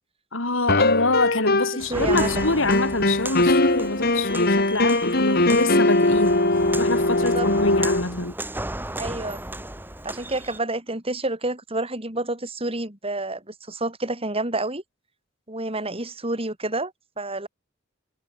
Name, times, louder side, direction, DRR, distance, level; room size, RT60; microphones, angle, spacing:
voice 1, 0.3-6.4 6.8-8.4, left 2 dB, 90° left, 6.0 m, -25 dB
sound 1, 0.7-1.8 2.1-8.0, left 2 dB, 50° left, 3.4 m, -21 dB
Walk footsteps, 1.8-10.6, right 1 dB, 10° right, 2.6 m, -35 dB
voice 2, 1.9-2.4 7.2-7.5 9.0-9.4 10.0-14.8 15.5-16.9 17.2-17.5, right 2 dB, 30° right, 6.0 m, -29 dB
head